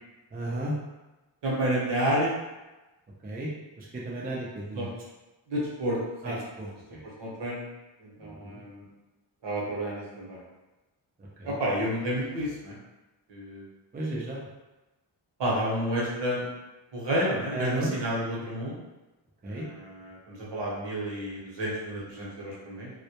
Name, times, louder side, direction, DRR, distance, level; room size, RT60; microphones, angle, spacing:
voice 1, 0.3-0.7 3.2-3.5 3.8-4.9 6.2-6.7 8.2-8.6 11.4-11.6 13.9-14.4 17.5-17.9 19.4-19.7, right 1 dB, 20° right, -5 dB, 0.4 m, -34 dB
voice 2, 1.4-2.3 4.7-4.9 5.5-6.0 6.2-6.4 7.2-7.7 8.0-8.9 9.4-10.4 11.4-12.8 13.3-13.6 15.4-16.5 16.9-18.8 19.4-22.9, right 1 dB, 60° right, -5 dB, 0.8 m, -30 dB
2.1 x 2.0 x 2.8 m, 1.1 s
wide cardioid pair, 115°, 48 cm